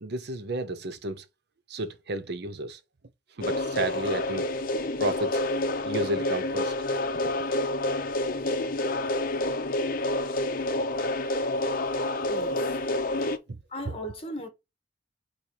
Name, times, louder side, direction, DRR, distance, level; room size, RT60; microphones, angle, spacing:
voice 1, 0.0-1.2 1.7-2.8 3.4-4.5 5.0-5.4 5.8-6.7, right 1 dB, 60° right, 0.7 m, -32 dB
sound 1, 3.4-13.4, left 1 dB, 50° left, 0.7 m, -28 dB
voice 2, 12.3-12.8 13.7-14.5, left 1 dB, 30° left, 1.7 m, -36 dB
4.5 x 4.3 x 4.8 m
head